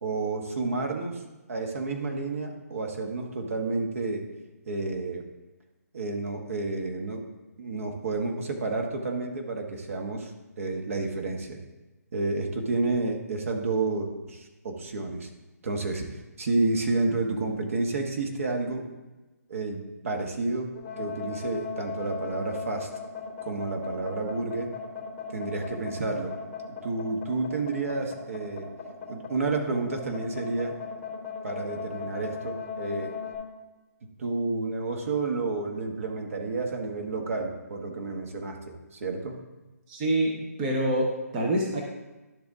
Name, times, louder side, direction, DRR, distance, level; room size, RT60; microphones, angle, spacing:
voice 1, 0.0-1.2 1.5-4.3 4.7-5.3 5.9-7.2 7.6-11.6 12.1-15.3 15.6-16.1 16.4-18.9 19.5-22.9 23.4-24.7 25.3-26.3 26.8-28.7 29.1-30.8 31.4-33.1 34.2-39.4, right 3 dB, 55° right, 3 dB, 1.3 m, -30 dB
sound 1, 20.7-33.3, left 6 dB, 15° left, 2.4 m, -37 dB
voice 2, 39.9-41.8, right 1 dB, 25° right, -1 dB, 0.9 m, -26 dB
12.0 x 4.0 x 3.6 m, 1.1 s
hypercardioid pair, 155°, 9 cm